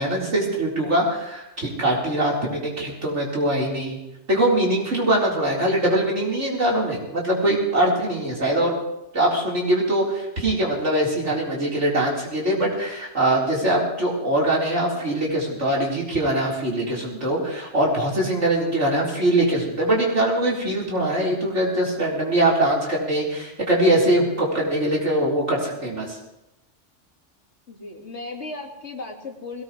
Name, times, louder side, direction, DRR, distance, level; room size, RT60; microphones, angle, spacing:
voice 1, 0.0-4.0 4.3-8.8 9.1-26.2, right 1 dB, 75° right, -4 dB, 4.6 m, -22 dB
voice 2, 11.5-11.9 27.7-29.6, left 2 dB, 65° left, 2 dB, 2.5 m, -36 dB
21.0 x 18.0 x 3.3 m, 0.89 s
omnidirectional pair, 1.2 m